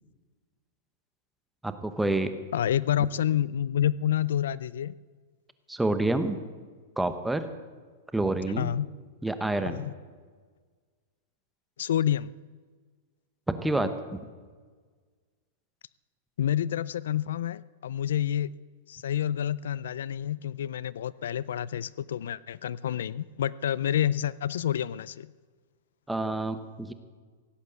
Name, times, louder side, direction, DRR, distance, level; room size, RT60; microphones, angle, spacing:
voice 1, 1.6-2.3 5.7-6.4 7.0-7.5 8.1-8.7 9.2-9.8 13.6-14.2 26.1-26.9, right 2 dB, 5° right, 10 dB, 0.9 m, -28 dB
voice 2, 2.5-4.9 8.6-8.9 9.7-9.9 11.8-12.3 16.4-18.5 18.9-25.3, left 10 dB, 85° left, 20 dB, 0.4 m, -28 dB
17.0 x 8.3 x 8.0 m, 1.5 s
supercardioid pair, 150°, 0 cm